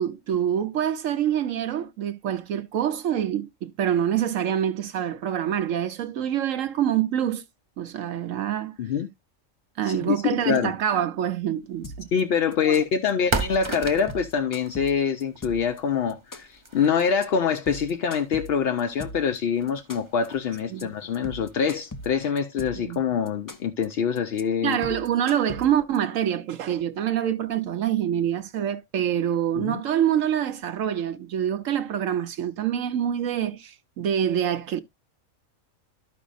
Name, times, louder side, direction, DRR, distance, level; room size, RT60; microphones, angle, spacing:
voice 1, 0.0-7.4 7.8-8.8 9.8-12.1 12.6-12.7 20.7-20.9 22.8-23.0 24.6-34.8, right 10 dB, 80° right, 1.1 m, -26 dB
voice 2, 9.8-10.7 12.1-24.8 29.6-29.8, left 7 dB, 60° left, 0.8 m, -25 dB
sound 1, 11.7-22.0, right 3 dB, 25° right, 0.9 m, -38 dB
sound 2, 11.8-12.2 12.5-13.1 13.4-13.7 14.0-15.8 16.1-16.7 17.0-17.2 17.6-19.4 19.7-20.3 20.6-20.8 21.1-22.9 23.3-23.8 24.2-24.4 24.7-26.0, left 1 dB, 30° left, 0.4 m, -39 dB
13.5 x 5.1 x 2.4 m
omnidirectional pair, 1.4 m